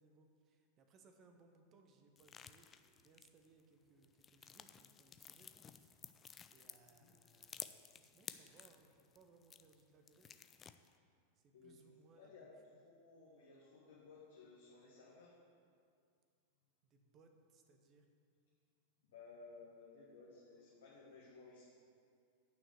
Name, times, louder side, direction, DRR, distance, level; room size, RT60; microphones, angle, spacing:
voice 1, 0.0-6.1 6.5-10.4 11.3-12.8 16.8-18.1, right 3 dB, 30° right, 5 dB, 1.1 m, -68 dB
sound 1, 2.2-3.6 4.0-9.8 10.1-11.0, left 7 dB, 20° left, 0.4 m, -54 dB
voice 2, 12.2-12.5 12.8-15.4 19.0-21.7, left 4 dB, 60° left, -5 dB, 1.6 m, -58 dB
9.5 x 5.9 x 6.7 m, 2.2 s
figure-of-eight pair, 90°, 0 cm